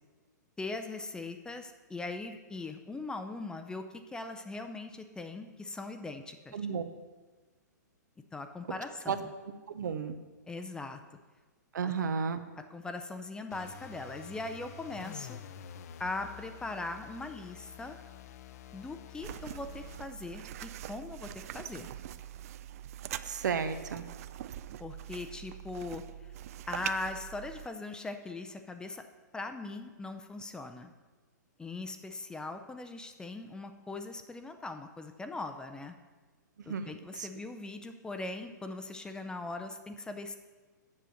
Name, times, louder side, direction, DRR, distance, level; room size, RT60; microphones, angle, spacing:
voice 1, 0.6-6.6 8.3-9.3 10.5-11.0 11.8-11.9 12.7-15.4 16.0-18.0 18.7-21.3 21.5-21.9 24.8-26.3 26.7-29.0 29.3-30.9 31.6-35.9 36.7-40.4, left 3 dB, 10° left, 7 dB, 0.5 m, -40 dB
voice 2, 6.5-6.8 9.1-9.2 9.7-10.2 11.7-12.4 23.2-24.0 36.7-37.3, right 6 dB, 75° right, 10 dB, 0.8 m, -33 dB
sound 1, 13.5-20.1, left 8 dB, 55° left, 0.6 m, -48 dB
sound 2, 19.2-27.7, right 11 dB, 50° right, 0.4 m, -43 dB
7.6 x 6.7 x 6.4 m, 1.3 s
hypercardioid pair, 130°, 10 cm